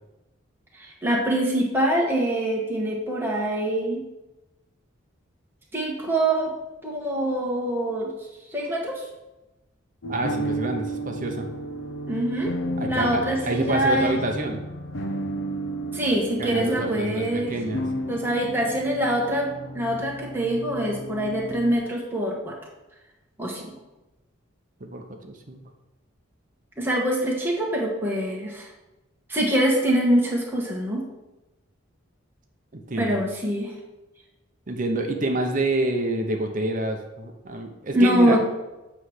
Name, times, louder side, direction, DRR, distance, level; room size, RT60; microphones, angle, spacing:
voice 1, 0.7-4.1 5.7-6.5 6.8-8.1 8.5-9.0 12.1-12.5 12.9-14.1 15.9-17.5 18.1-19.5 19.7-22.6 23.4-23.7 26.8-28.7 29.3-31.0 33.0-33.7 37.9-38.4, right 1 dB, 10° right, -3 dB, 1.3 m, -24 dB
sound 1, 10.0-21.8, right 1 dB, 65° left, 0.8 m, -33 dB
voice 2, 10.1-11.5 12.8-14.6 16.4-17.8 24.8-25.6 32.7-33.2 34.7-38.4, right 2 dB, 40° right, 4 dB, 0.7 m, -27 dB
7.7 x 3.3 x 6.3 m, 1.0 s
head